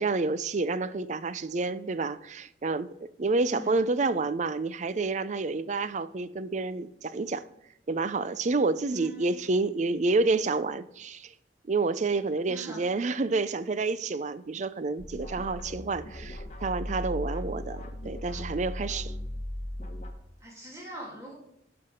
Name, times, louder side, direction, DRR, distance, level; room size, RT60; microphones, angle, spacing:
voice 1, 0.0-7.4 7.9-11.3 11.7-19.1, right 3 dB, 40° right, 0.5 m, -29 dB
voice 2, 3.3-3.8 8.9-9.4 12.5-12.8 20.4-21.3, equal, 15° right, 3.0 m, -43 dB
sound 1, 15.0-20.1, left 1 dB, 40° left, 1.3 m, -37 dB
12.0 x 5.9 x 5.1 m
head